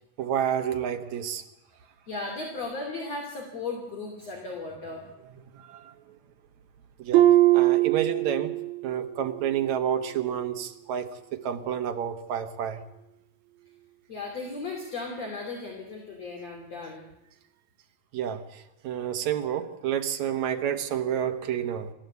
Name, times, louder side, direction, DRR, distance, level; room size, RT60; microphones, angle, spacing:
voice 1, 0.2-1.4 5.5-6.0 7.0-7.3 7.5-8.5 8.8-12.8 18.1-21.9, right 9 dB, 60° right, 2.2 m, -29 dB
voice 2, 2.1-5.0 14.1-17.1, left 3 dB, 45° left, 3.8 m, -36 dB
Harp, 7.1-8.9 9.3-9.7 10.2-10.3, right 15 dB, 80° right, 2.8 m, -21 dB
28.0 x 14.0 x 8.1 m
omnidirectional pair, 4.3 m